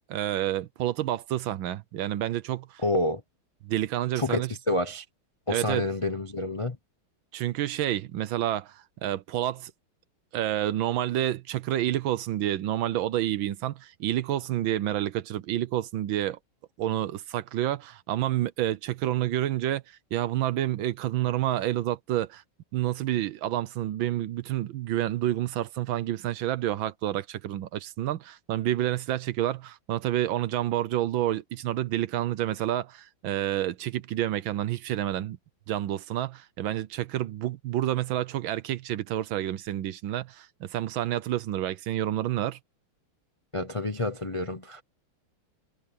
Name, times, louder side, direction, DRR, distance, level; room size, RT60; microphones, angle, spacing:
voice 1, 0.1-2.8 3.6-4.5 5.5-5.8 7.3-9.7 10.3-16.4 16.8-22.4 22.7-35.4 35.7-42.6, right 13 dB, 70° right, 1.4 m, -29 dB
voice 2, 2.8-3.2 4.1-5.0 5.5-6.8 43.5-44.8, left 2 dB, 40° left, 0.4 m, -28 dB
omnidirectional pair, 2.4 m